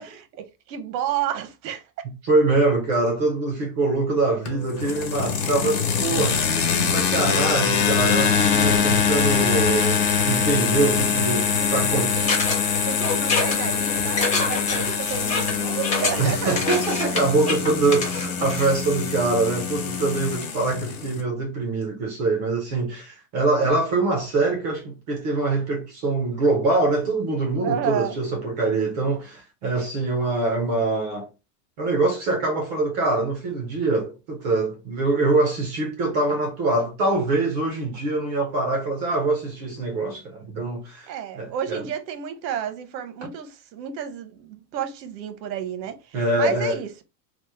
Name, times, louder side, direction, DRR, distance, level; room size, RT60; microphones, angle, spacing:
voice 1, 0.0-2.1 10.7-11.0 11.5-16.5 27.6-28.2 41.1-47.0, right 9 dB, 90° right, 0.8 m, -31 dB
voice 2, 2.2-6.4 6.9-12.3 16.2-31.3 31.8-41.8 46.1-46.8, right 3 dB, 30° right, 0.3 m, -24 dB
sound 1, 4.5-21.2, left 6 dB, 65° left, 1.0 m, -24 dB
sound 2, 12.3-19.2, left 3 dB, 15° left, 0.6 m, -27 dB
3.0 x 2.0 x 3.2 m
supercardioid pair, 160°, 49 cm